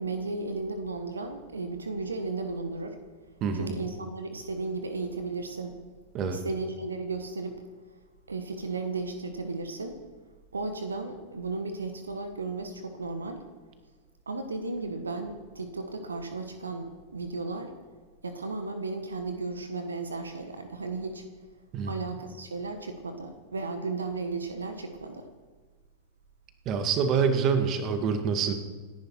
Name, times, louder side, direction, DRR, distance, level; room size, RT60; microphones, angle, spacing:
voice 1, 0.0-3.0 3.5-5.8 6.3-7.6 8.3-10.0 10.5-13.4 14.3-17.7 18.2-21.2 21.9-25.3, right 3 dB, 75° right, 8 dB, 1.5 m, -34 dB
voice 2, 3.4-3.8 6.1-6.4 21.7-21.9 26.7-28.5, right 6 dB, 35° right, 7 dB, 1.9 m, -26 dB
28.0 x 11.0 x 4.6 m, 1.4 s
figure-of-eight pair, 90°, 0 cm